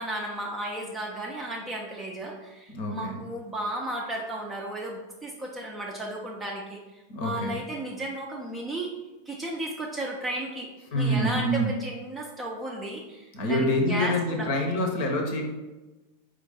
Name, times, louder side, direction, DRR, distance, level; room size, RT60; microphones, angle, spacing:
voice 1, 0.0-6.8 7.2-8.9 9.3-10.7 11.0-14.5, right 1 dB, 15° right, -2 dB, 0.5 m, -34 dB
voice 2, 2.7-3.2 7.1-7.6 10.9-11.7 13.3-15.5, equal, 50° left, 3 dB, 0.7 m, -26 dB
4.5 x 2.5 x 4.1 m, 1.1 s
figure-of-eight pair, 90°, 0 cm